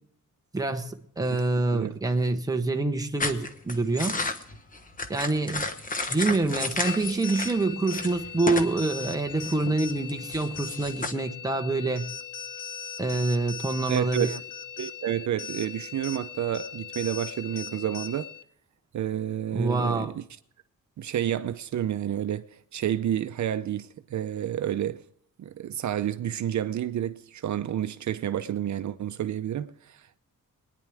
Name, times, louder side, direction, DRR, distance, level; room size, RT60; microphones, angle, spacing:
voice 1, 0.5-4.2 5.1-5.7 6.1-12.1 13.0-14.3 19.5-20.1, right 3 dB, 10° right, 1.0 m, -26 dB
sound 1, 3.2-7.6 7.9-8.8 9.0-11.1, left 3 dB, 25° left, 1.1 m, -32 dB
sound 2, 6.8-18.4, left 7 dB, 80° left, 1.0 m, -39 dB
voice 2, 13.9-14.4 14.8-18.3 18.9-20.2 21.0-25.0 25.4-30.2, right 10 dB, 60° right, 0.7 m, -30 dB
23.0 x 10.0 x 3.5 m
wide cardioid pair, 160°, 32 cm